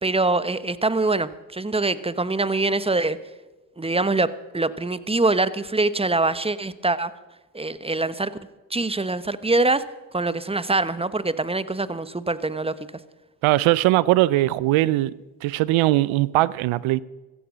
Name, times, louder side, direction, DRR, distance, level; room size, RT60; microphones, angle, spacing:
voice 1, 0.0-3.2 3.8-7.1 7.5-8.3 8.7-9.9 10.1-12.7, right 2 dB, 10° right, 1.1 m, -24 dB
voice 2, 13.4-15.1 15.4-17.0, right 17 dB, 90° right, 0.6 m, -20 dB
15.5 x 15.0 x 6.2 m
supercardioid pair, 50°, 46 cm